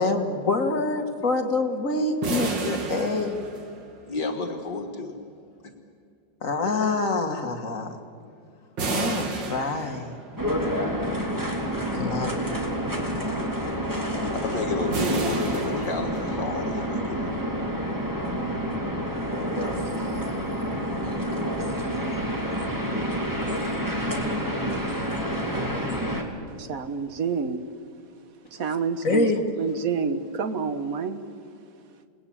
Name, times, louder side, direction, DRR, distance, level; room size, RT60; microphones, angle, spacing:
voice 1, 0.0-3.4 6.4-8.0 8.9-10.1 11.9-12.3 29.0-29.4, left 3 dB, 45° left, 5 dB, 2.0 m, -26 dB
sound 1, 2.2-4.1 8.8-10.4 14.9-16.6, right 3 dB, 70° right, 2.7 m, -31 dB
voice 2, 4.1-5.1 14.3-17.3, left 3 dB, 65° left, 5 dB, 2.2 m, -31 dB
sound 2, 10.4-26.2, equal, 10° right, 2.5 m, -28 dB
voice 3, 26.6-27.6 28.6-29.3 29.6-31.2, right 5 dB, 50° right, 10 dB, 1.5 m, -28 dB
29.0 x 19.0 x 8.7 m, 2.3 s
omnidirectional pair, 2.0 m